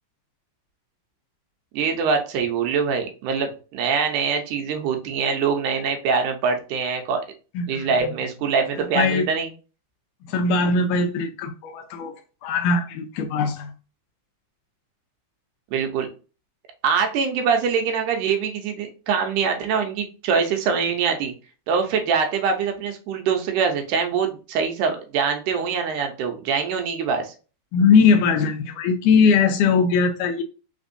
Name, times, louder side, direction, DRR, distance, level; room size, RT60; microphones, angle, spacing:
voice 1, 1.7-7.3 7.7-9.5 15.7-16.1 16.8-21.3 21.7-27.3, right 6 dB, 75° right, 2.1 m, -23 dB
voice 2, 7.6-8.1 9.0-9.2 10.3-12.1 12.4-13.7 27.7-30.4, left 5 dB, 80° left, 1.9 m, -20 dB
5.2 x 3.4 x 2.5 m
omnidirectional pair, 3.8 m